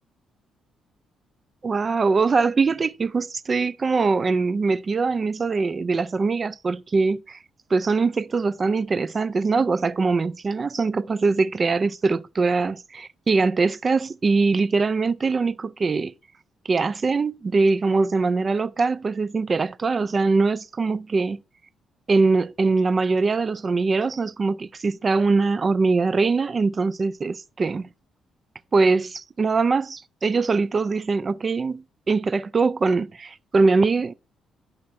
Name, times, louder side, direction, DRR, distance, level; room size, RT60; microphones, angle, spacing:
voice 1, 1.6-7.4 7.7-16.1 16.7-21.4 22.1-27.9 28.7-34.1, right 4 dB, 35° right, 0.4 m, -22 dB
11.0 x 5.6 x 2.6 m
cardioid pair, 90°, 0 cm